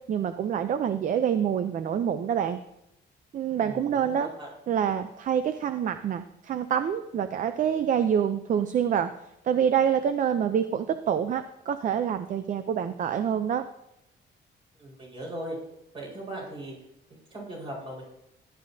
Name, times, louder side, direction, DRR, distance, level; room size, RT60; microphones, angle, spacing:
voice 1, 0.1-2.6 3.3-4.3 4.7-9.1 9.4-13.6, right 8 dB, 45° right, 10 dB, 0.5 m, -26 dB
voice 2, 3.5-4.5 14.8-15.6 15.9-16.7 17.1-18.0, right 1 dB, 25° right, -2 dB, 4.7 m, -39 dB
15.5 x 11.5 x 2.7 m, 0.83 s
cardioid pair, 175°, 19 cm